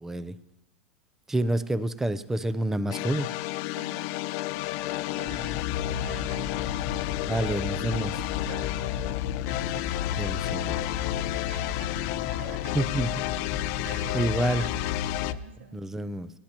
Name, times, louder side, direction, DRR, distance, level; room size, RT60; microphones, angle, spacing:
voice 1, 0.0-0.3 1.3-3.3 7.3-8.1 10.1-10.9 12.7-13.1 13.8-14.6 15.7-16.3, right 1 dB, 5° right, 15 dB, 0.5 m, -28 dB
sound 1, 2.9-15.3, left 17 dB, 50° left, 0.5 m, -32 dB
voice 2, 3.8-4.7 5.1-6.7 8.0-9.5 11.4-11.9 12.2-13.2 13.8-14.9 15.3-15.9, right 7 dB, 80° right, 6 dB, 1.6 m, -47 dB
sound 2, 5.2-15.4, left 8 dB, 35° left, 1.0 m, -34 dB
29.5 x 10.5 x 2.9 m, 0.98 s
supercardioid pair, 140°, 6 cm